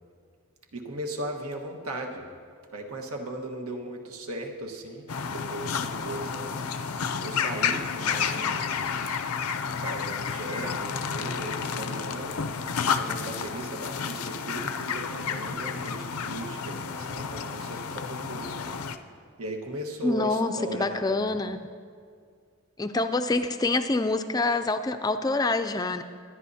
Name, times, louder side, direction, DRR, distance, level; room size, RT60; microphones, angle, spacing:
voice 1, 0.7-2.3 2.7-9.2 9.6-18.8 19.4-21.4, right 1 dB, 85° right, 2 dB, 1.4 m, -38 dB
sound 1, 5.1-19.0, left 6 dB, 85° left, 0.6 m, -31 dB
voice 2, 20.0-21.6 22.8-26.0, left 2 dB, 15° left, 9 dB, 0.3 m, -26 dB
23.0 x 9.9 x 2.8 m, 2.1 s
head